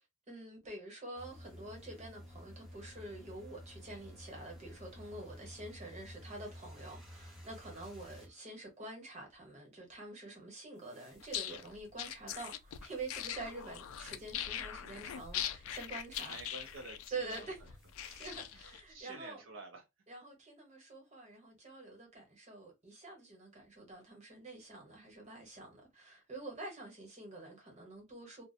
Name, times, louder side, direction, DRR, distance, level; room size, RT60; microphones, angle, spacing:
voice 1, 0.3-16.3 17.1-17.6 18.0-19.4 20.1-28.4, right 2 dB, 35° right, 1.0 m, -47 dB
sound 1, 1.2-8.3 10.8-12.1 12.7-14.6 15.0-15.4 15.9-17.1 17.5-18.5, equal, ahead, 0.6 m, -54 dB
sound 2, 11.2-18.8, left 10 dB, 80° left, 0.3 m, -42 dB
voice 2, 16.2-17.7 18.5-18.6 18.9-19.8, right 3 dB, 65° right, 0.5 m, -50 dB
2.4 x 2.1 x 2.6 m
head